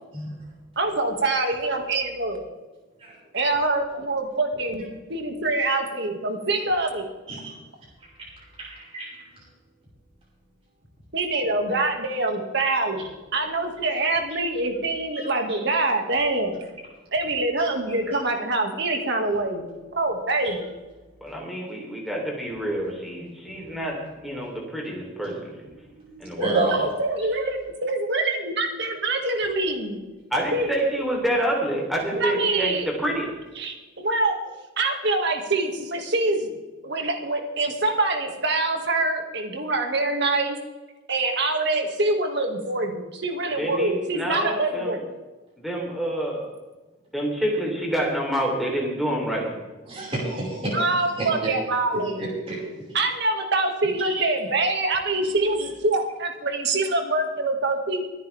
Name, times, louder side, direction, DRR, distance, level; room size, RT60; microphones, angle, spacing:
voice 1, 0.8-2.5 3.3-4.8 5.1-7.1 11.1-13.0 13.3-16.6 17.1-20.7 26.4-30.0 30.5-30.7 32.1-32.9 33.6-34.3 34.8-36.5 36.8-40.6 41.1-45.0 50.7-52.3 52.9-58.0, right 2 dB, 55° right, 3 dB, 2.3 m, -25 dB
voice 2, 8.6-9.2 15.1-15.3 26.0-26.8 49.9-50.8 51.2-51.3 51.9-52.9 54.0-54.3 55.2-55.3 55.6-55.7, right 2 dB, 30° right, -7 dB, 5.6 m, -30 dB
voice 3, 21.2-24.0 24.2-25.7 26.2-26.7 30.3-33.4 43.6-45.0 45.6-46.5 47.1-49.5, right 1 dB, ahead, -2 dB, 3.8 m, -27 dB
24.5 x 10.0 x 3.6 m, 1.2 s
head